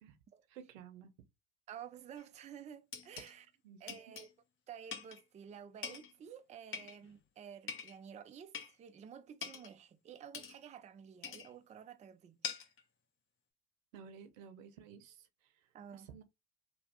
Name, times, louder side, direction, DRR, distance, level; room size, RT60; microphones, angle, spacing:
voice 1, 0.5-1.1 3.6-3.8 13.9-16.2, right 7 dB, 80° right, 0.8 m, -54 dB
voice 2, 1.7-3.5 3.8-4.3 4.7-12.7 15.7-16.1, right 8 dB, 20° right, 0.4 m, -52 dB
sound 1, 2.2-2.3 2.9-3.3 3.9-4.3 4.9-5.2 5.8-6.1 6.7-7.2 7.7-8.0 8.5-8.8 9.4-9.7 10.3-10.6 11.2-11.5 12.4-12.8, left 7 dB, 35° left, 0.8 m, -44 dB
3.1 x 2.2 x 2.9 m
hypercardioid pair, 80°, 39 cm